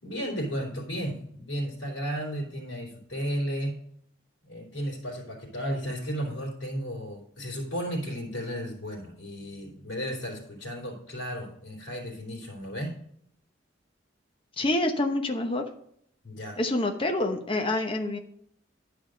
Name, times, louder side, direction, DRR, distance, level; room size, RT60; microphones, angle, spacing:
voice 1, 0.0-3.8 4.4-12.9 16.2-16.6, equal, 75° left, -6 dB, 3.4 m, -34 dB
voice 2, 14.6-15.6 16.6-18.2, left 2 dB, 25° left, 4 dB, 1.0 m, -27 dB
10.5 x 5.0 x 5.1 m, 0.68 s
head